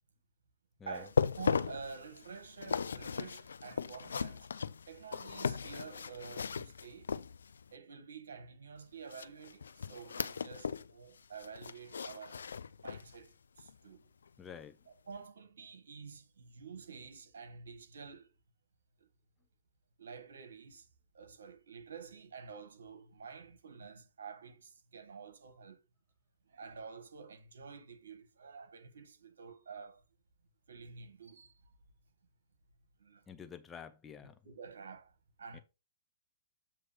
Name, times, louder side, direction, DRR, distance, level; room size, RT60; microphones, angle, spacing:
sound 1, 1.0-7.7 9.1-10.9 11.2-13.2 13.6-13.7 14.3-14.4, left 6 dB, 80° left, 0.4 m, -37 dB
voice 1, 1.4-4.5 4.9-7.1 7.7-12.4 12.8-14.1 15.1-18.3 19.0-19.1 20.0-20.9 21.1-25.8 26.5-30.0 30.7-31.6 33.0-33.2 34.4-35.6, right 5 dB, 75° right, 1.7 m, -49 dB
voice 2, 14.4-14.8 33.3-34.4 35.5-35.6, left 7 dB, 15° left, 0.7 m, -49 dB
7.7 x 3.1 x 5.1 m
hypercardioid pair, 125°, 0 cm